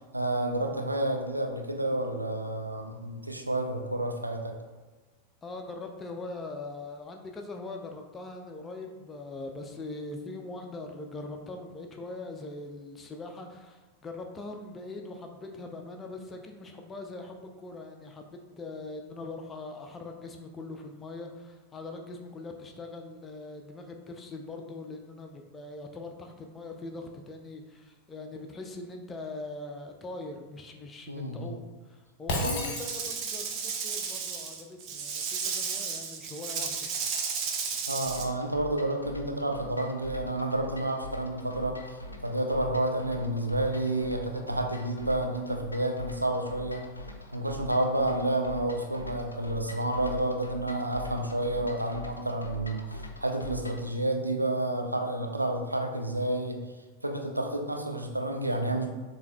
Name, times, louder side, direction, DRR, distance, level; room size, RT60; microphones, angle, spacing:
voice 1, 0.1-4.5 31.1-31.5 32.4-32.6 37.9-46.8 47.3-52.8 53.2-56.6 57.0-58.9, right 1 dB, 85° right, 3 dB, 0.4 m, -30 dB
voice 2, 5.4-36.9 37.7-37.8, left 2 dB, 20° left, 3 dB, 0.5 m, -41 dB
Shatter, 32.3-33.5, left 1 dB, 45° left, 0.8 m, -32 dB
Rattle / Rattle (instrument), 32.7-38.3, right 6 dB, 40° right, 0.6 m, -33 dB
sound 1, 38.0-53.9, left 1 dB, 80° left, 0.4 m, -43 dB
6.9 x 2.6 x 2.3 m, 1.3 s
figure-of-eight pair, 90°, 0 cm